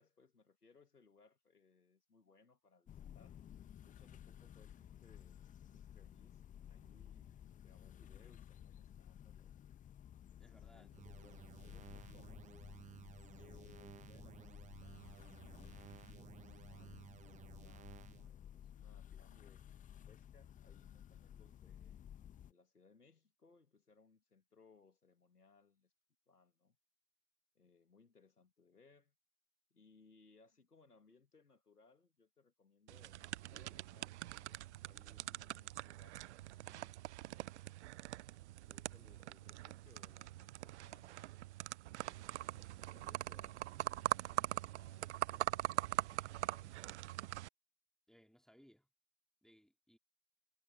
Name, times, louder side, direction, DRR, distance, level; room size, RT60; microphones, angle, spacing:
voice 1, 0.0-3.4 3.8-5.4 5.7-9.6 10.5-12.9 13.3-15.8 16.2-22.0 22.5-25.9 26.3-26.8 27.6-29.1 29.7-37.6 38.7-41.5 41.8-47.1, left 4 dB, 90° left, 2.0 m, -68 dB
sound 1, 2.9-22.5, left 10 dB, 15° left, 1.1 m, -55 dB
voice 2, 10.4-10.9 21.3-21.5 48.1-48.9 49.4-50.0, equal, ahead, 3.4 m, -66 dB
sound 2, 10.9-18.3, right 10 dB, 15° right, 0.9 m, -57 dB
sound 3, 32.9-47.5, right 16 dB, 50° right, 0.5 m, -43 dB
figure-of-eight pair, 100°, 45 cm